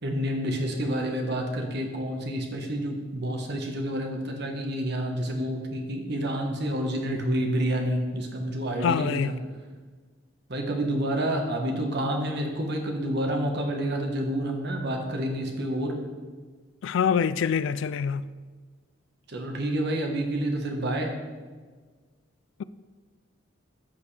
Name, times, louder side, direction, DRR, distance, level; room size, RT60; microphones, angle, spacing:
voice 1, 0.0-9.3 10.5-16.0 19.3-21.1, right 1 dB, 55° right, 1.3 m, -29 dB
voice 2, 8.8-9.3 16.8-18.2, left 7 dB, 70° left, 0.3 m, -25 dB
14.0 x 5.3 x 3.3 m
head